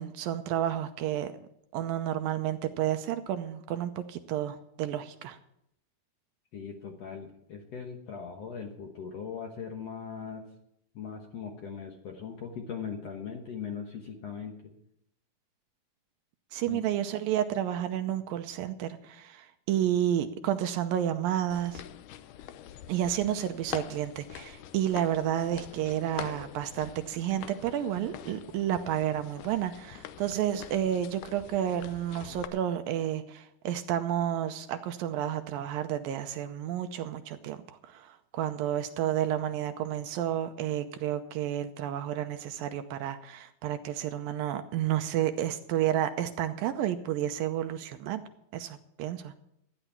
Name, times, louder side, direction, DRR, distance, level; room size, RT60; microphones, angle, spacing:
voice 1, 0.0-1.3 1.7-5.4 16.5-21.8 22.9-48.2 48.5-49.3, right 11 dB, 80° right, 8 dB, 2.3 m, -31 dB
voice 2, 6.5-10.5 10.9-14.7 16.7-16.8, left 6 dB, 60° left, 2 dB, 1.7 m, -40 dB
sound 1, 21.5-32.5, left 11 dB, 85° left, 1.8 m, -45 dB
14.0 x 10.0 x 5.9 m, 0.76 s
omnidirectional pair, 4.4 m